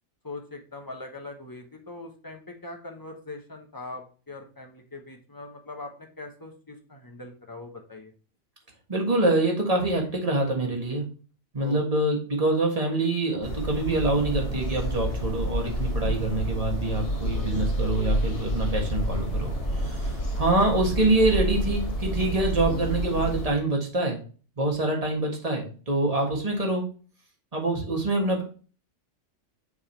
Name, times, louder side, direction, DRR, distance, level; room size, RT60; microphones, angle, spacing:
voice 1, 0.2-8.1 11.6-11.8 16.0-16.4, left 2 dB, 20° left, 3 dB, 0.9 m, -41 dB
voice 2, 8.9-11.1 11.5-24.2 24.6-26.8 27.5-28.4, right 2 dB, 30° right, 0 dB, 1.6 m, -25 dB
sound 1, 13.4-23.5, equal, 50° left, 1.5 m, -29 dB
6.9 x 3.6 x 4.4 m, 0.38 s
omnidirectional pair, 1.4 m